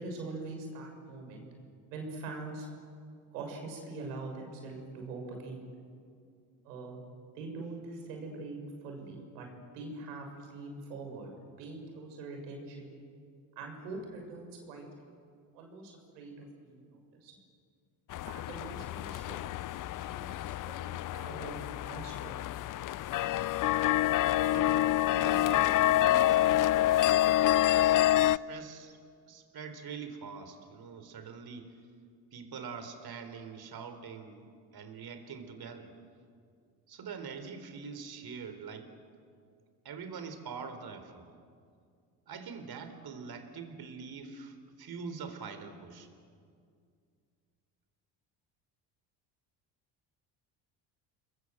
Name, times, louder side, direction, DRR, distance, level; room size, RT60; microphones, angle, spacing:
voice 1, 0.0-1.5 1.9-2.7 3.3-5.6 6.6-7.0 7.3-9.5 9.7-11.3 11.6-13.0 13.6-14.8 15.5-17.4 18.1-19.4 20.0-21.6 21.9-22.4, right 3 dB, 85° right, 2 dB, 6.4 m, -43 dB
sound 1, 18.1-28.4, left 14 dB, 45° left, 0.6 m, -27 dB
voice 2, 24.5-27.1 27.4-27.6 28.2-29.0 29.3-31.8 32.3-35.9 36.9-38.9 39.8-41.3 42.3-46.1, right 5 dB, 50° right, 8 dB, 4.0 m, -44 dB
30.0 x 21.5 x 7.9 m, 2.2 s
hypercardioid pair, 70°, 47 cm